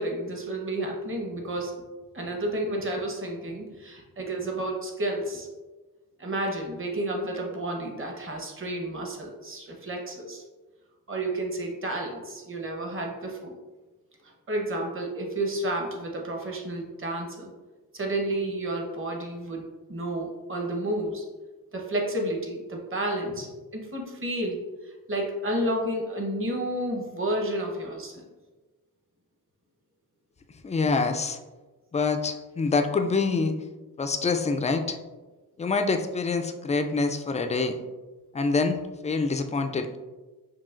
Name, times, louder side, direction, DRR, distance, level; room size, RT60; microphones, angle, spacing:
voice 1, 0.0-1.7 2.1-5.5 6.2-10.4 11.1-13.5 14.2-17.5 17.9-21.2 21.7-28.2, right 1 dB, 30° right, 1 dB, 1.0 m, -31 dB
voice 2, 30.6-31.4 31.9-33.5 34.0-35.0 35.6-37.8 38.3-38.8 39.0-39.9, left 4 dB, 20° left, 6 dB, 0.3 m, -26 dB
5.6 x 2.4 x 2.5 m, 1.2 s
cardioid pair, 65°, 39 cm